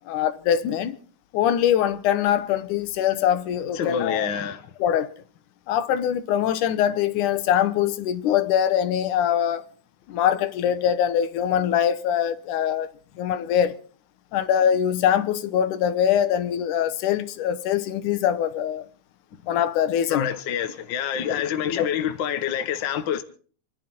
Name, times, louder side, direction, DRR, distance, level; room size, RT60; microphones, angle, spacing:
voice 1, 0.1-1.0 1.3-4.3 4.8-5.1 5.7-9.6 10.1-12.9 13.2-13.8 14.3-18.9 19.5-20.3 21.6-21.9, left 9 dB, 85° left, 2.5 m, -23 dB
voice 2, 3.7-4.7 20.1-23.2, left 8 dB, 50° left, 1.5 m, -27 dB
28.0 x 11.0 x 4.4 m
omnidirectional pair, 3.5 m